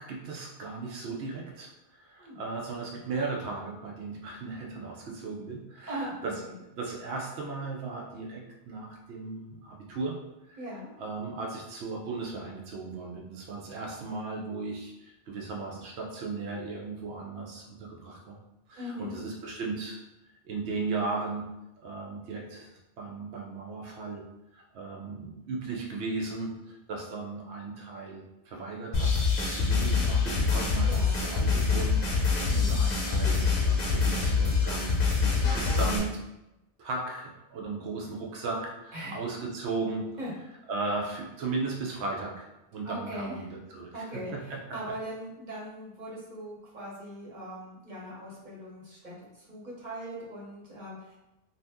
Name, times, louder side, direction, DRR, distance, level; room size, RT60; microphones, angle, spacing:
voice 1, 0.0-6.4 6.7-10.2 10.5-10.6 11.0-18.4 18.7-20.0 20.4-21.4 21.8-24.2 24.5-36.1 36.8-40.1 40.7-44.1 44.3-44.9, right 3 dB, 75° right, -1 dB, 0.9 m, -36 dB
voice 2, 5.9-6.3 10.6-10.9 18.8-19.2 30.9-31.2 32.4-32.8 38.9-39.2 40.2-40.3 42.8-43.4 43.9-51.1, equal, 40° right, -6 dB, 1.1 m, -40 dB
sound 1, 28.9-36.0, left 4 dB, 45° left, 0.7 m, -25 dB
2.7 x 2.4 x 3.4 m, 0.95 s
omnidirectional pair, 1.2 m